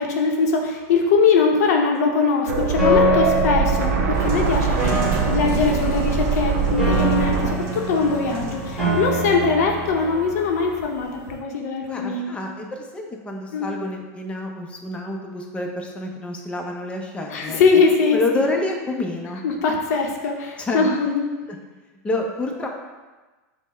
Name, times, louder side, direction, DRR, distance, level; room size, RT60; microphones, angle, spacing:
voice 1, 0.0-12.4 13.5-13.7 17.3-18.2 19.4-21.2, left 4 dB, 75° left, 1 dB, 0.7 m, -21 dB
sound 1, 2.5-7.5, right 6 dB, 85° right, 0.6 m, -23 dB
Piano, 2.8-10.8, equal, 5° right, 1.5 m, -25 dB
sound 2, 4.1-11.4, right 3 dB, 45° right, 0.9 m, -34 dB
voice 2, 11.9-17.6 18.1-19.4 20.6-20.8 22.0-22.7, left 2 dB, 15° left, 1 dB, 0.5 m, -28 dB
5.5 x 2.1 x 4.2 m, 1.2 s
supercardioid pair, 130°, 9 cm